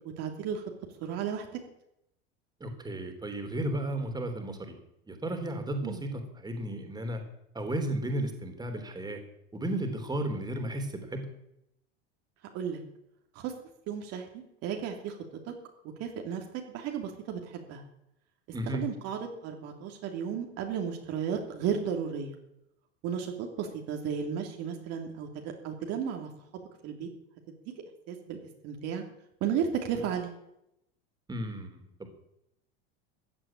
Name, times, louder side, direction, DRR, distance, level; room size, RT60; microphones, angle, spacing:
voice 1, 0.2-0.6 1.0-1.5 5.8-6.0 12.5-12.8 13.3-13.5 13.9-15.2 15.4-15.5 16.0-16.4 16.7-17.9 18.7-22.4 23.0-26.3 26.8-27.1 28.1-28.4 28.6-29.0 29.4-30.3, right 7 dB, 55° right, 2 dB, 3.0 m, -34 dB
voice 2, 2.6-4.8 5.1-7.2 7.5-9.2 9.5-11.3 18.5-18.8 31.3-32.1, right 1 dB, 15° right, 6 dB, 3.5 m, -34 dB
15.5 x 8.9 x 8.9 m, 0.81 s
supercardioid pair, 115°, 30 cm